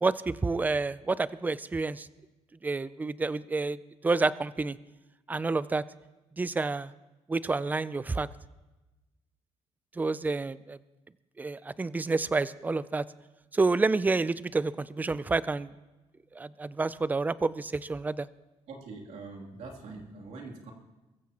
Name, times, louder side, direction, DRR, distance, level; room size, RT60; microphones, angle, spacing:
voice 1, 0.0-2.1 2.6-3.8 4.0-4.8 5.3-5.8 6.4-6.9 7.3-8.3 9.9-10.8 11.4-13.1 13.5-15.7 16.3-18.3, right 3 dB, 15° right, 17 dB, 0.4 m, -29 dB
voice 2, 18.7-20.7, right 3 dB, 65° right, 0 dB, 2.9 m, -43 dB
22.5 x 14.5 x 2.9 m, 1.1 s
cardioid pair, 130°, 12 cm